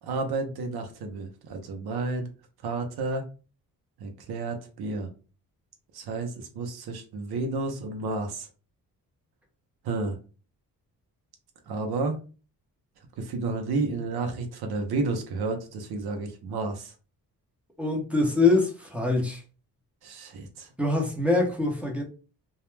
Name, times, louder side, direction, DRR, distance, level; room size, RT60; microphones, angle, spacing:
voice 1, 0.0-2.3 2.6-3.3 4.0-5.1 5.9-8.5 9.8-10.2 11.7-12.2 13.2-16.9 20.0-20.7, right 3 dB, 80° right, 0.6 m, -31 dB
voice 2, 17.8-19.4 20.8-22.0, left 3 dB, 5° right, 0.6 m, -24 dB
2.3 x 2.0 x 3.1 m
cardioid pair, 120°, 37 cm